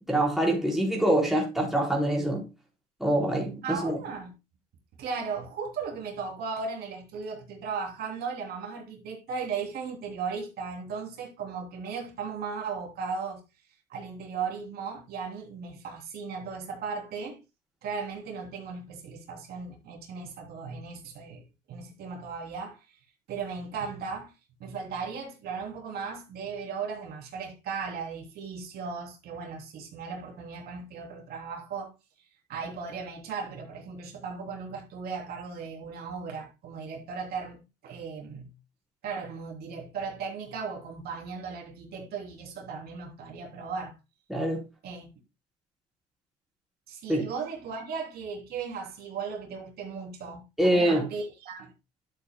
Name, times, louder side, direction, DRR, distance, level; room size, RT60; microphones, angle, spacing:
voice 1, 0.1-2.4 3.0-4.0 44.3-44.6 47.1-47.2 50.6-51.1, right 1 dB, ahead, 4.2 m, -25 dB
voice 2, 3.6-4.3 5.0-13.4 13.9-17.4 17.8-21.4 21.7-22.8 23.3-24.3 24.6-31.9 32.5-38.5 39.0-43.9 44.8-45.1 46.9-51.7, right 5 dB, 65° right, 3.1 m, -36 dB
11.5 x 7.5 x 2.2 m
cardioid pair, 110°, 17 cm